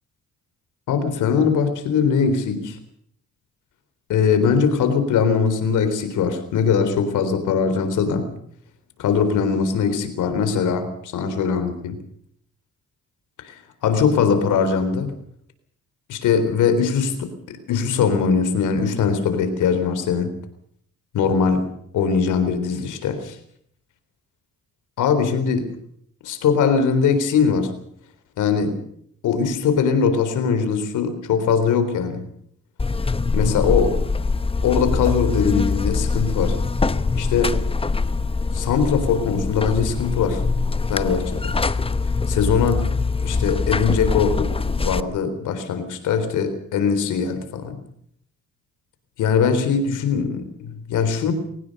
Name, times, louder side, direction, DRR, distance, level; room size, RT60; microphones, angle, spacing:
voice 1, 0.9-2.8 4.1-8.3 9.0-12.0 13.4-15.1 16.1-20.3 21.1-21.6 21.9-23.4 25.0-25.6 26.2-27.7 28.4-28.8 29.2-32.2 33.3-34.0 34.6-36.6 37.1-37.6 38.5-40.4 40.9-41.6 42.3-42.9 43.2-47.8 49.2-51.3, left 6 dB, 80° left, 9 dB, 4.0 m, -21 dB
Buzz, 32.8-45.0, left 4 dB, 20° left, 1.0 m, -23 dB
22.0 x 18.5 x 6.7 m, 0.68 s
cardioid pair, 90°, 30 cm